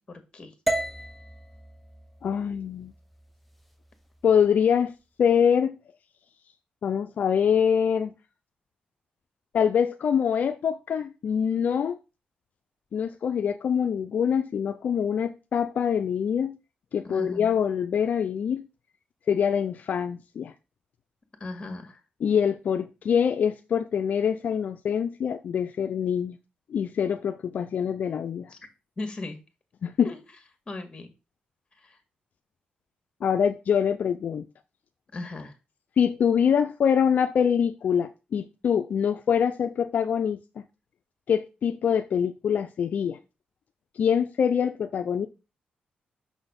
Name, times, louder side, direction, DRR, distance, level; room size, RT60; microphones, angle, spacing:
voice 1, 0.1-0.5 17.0-17.5 21.4-22.0 28.5-28.6 29.0-29.4 30.0-30.2 30.7-31.1 31.8-32.0 35.1-35.5, left 2 dB, 30° left, 1.7 m, -37 dB
sound 1, 0.7-4.8, right 1 dB, ahead, 0.7 m, -35 dB
voice 2, 2.2-2.9 4.2-4.9 5.2-5.7 6.8-8.1 9.5-12.0 12.9-16.5 16.9-18.6 19.3-20.5 22.2-26.4 26.7-28.5 29.8-30.1 33.2-34.5 36.0-40.4 41.3-43.2 43.9-45.3, left 7 dB, 60° left, 0.4 m, -24 dB
6.3 x 4.1 x 5.2 m
cardioid pair, 100°, 3 cm